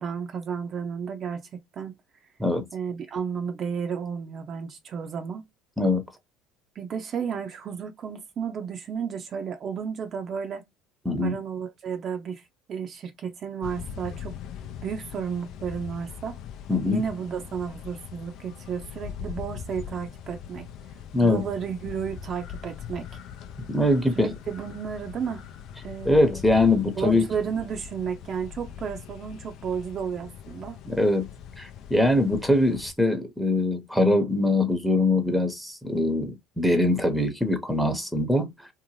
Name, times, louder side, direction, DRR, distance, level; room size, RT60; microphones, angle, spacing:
voice 1, 0.0-2.0 2.7-5.5 6.8-10.6 11.2-12.4 12.7-14.4 14.8-16.4 16.9-20.7 21.2-23.1 24.2-25.4 25.8-26.3 27.0-30.8, right 7 dB, 45° right, 0.5 m, -32 dB
voice 2, 11.0-11.4 16.7-17.0 21.1-21.4 23.7-24.3 26.0-27.3 30.9-31.3 31.6-38.7, left 2 dB, ahead, 0.8 m, -22 dB
sound 1, 13.6-32.9, left 8 dB, 60° left, 0.4 m, -41 dB
2.6 x 2.1 x 3.0 m
hypercardioid pair, 70°, 0 cm